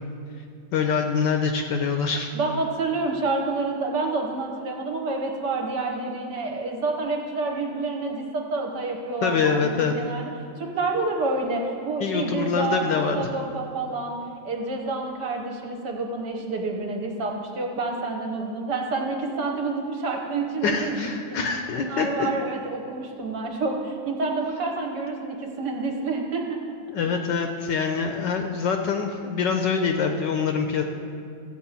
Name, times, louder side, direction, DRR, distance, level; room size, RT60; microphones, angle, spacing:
voice 1, 0.7-2.3 9.2-9.9 12.0-13.3 20.6-22.3 26.9-30.8, left 5 dB, 70° left, 4 dB, 1.2 m, -25 dB
voice 2, 2.3-10.3 10.6-12.8 13.1-21.4 21.7-26.6, right 3 dB, 60° right, 1 dB, 1.6 m, -28 dB
14.0 x 4.8 x 8.2 m, 2.4 s
omnidirectional pair, 2.3 m